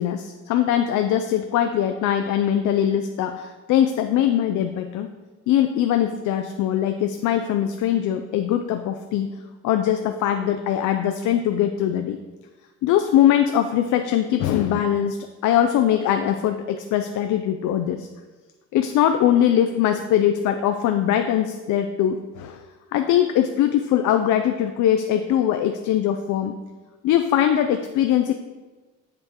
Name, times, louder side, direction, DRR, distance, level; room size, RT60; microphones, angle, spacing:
voice 1, 0.0-5.1 5.5-9.3 9.6-12.2 12.8-15.2 15.4-18.1 18.7-22.6 22.9-26.6 27.0-28.3, left 10 dB, 80° left, 7 dB, 0.5 m, -21 dB
7.7 x 6.9 x 2.9 m, 1.3 s
cardioid pair, 90°, 30 cm